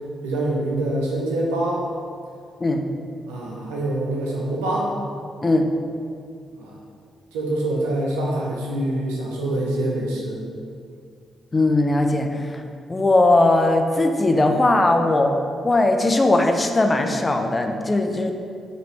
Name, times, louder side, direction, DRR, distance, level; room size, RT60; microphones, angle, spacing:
voice 1, 0.2-1.8 3.3-4.9 6.5-6.8 7.3-10.4, right 1 dB, 90° right, -3 dB, 0.6 m, -25 dB
voice 2, 11.5-12.6 12.9-15.3 15.6-18.3, left 2 dB, 30° left, 4 dB, 0.4 m, -19 dB
4.0 x 2.8 x 3.2 m, 2.2 s
hypercardioid pair, 45°, 0 cm